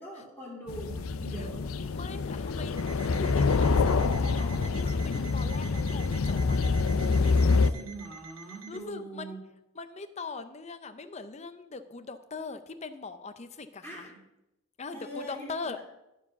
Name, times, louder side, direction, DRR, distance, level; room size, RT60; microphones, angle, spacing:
voice 1, 0.0-1.6 7.5-9.4 13.8-14.2 14.9-15.8, right 1 dB, 5° left, -6 dB, 2.4 m, -42 dB
sound 1, 0.7-7.7, left 4 dB, 85° left, 0.5 m, -26 dB
voice 2, 1.9-6.6 8.7-9.4 9.7-14.1 14.8-15.8, left 4 dB, 30° left, 11 dB, 0.6 m, -41 dB
Alarm, 2.8-8.8, right 6 dB, 90° right, 1.5 m, -48 dB
12.5 x 4.7 x 7.0 m, 0.92 s
head